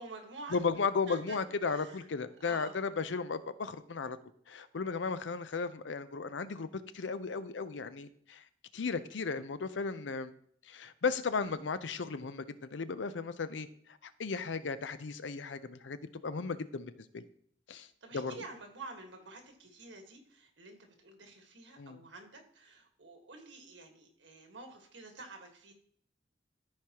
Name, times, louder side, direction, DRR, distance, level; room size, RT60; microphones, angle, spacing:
voice 1, 0.0-0.6 1.1-1.4 1.7-2.1 2.4-2.7 17.7-25.7, right 3 dB, 90° right, 4 dB, 1.6 m, -49 dB
voice 2, 0.5-4.2 4.5-8.4 8.7-10.3 10.7-13.7 14.0-16.0 16.2-17.2 17.7-17.9 18.1-18.3 21.8-22.0, left 4 dB, 85° left, 13 dB, 0.6 m, -35 dB
14.0 x 4.8 x 2.9 m, 0.63 s
head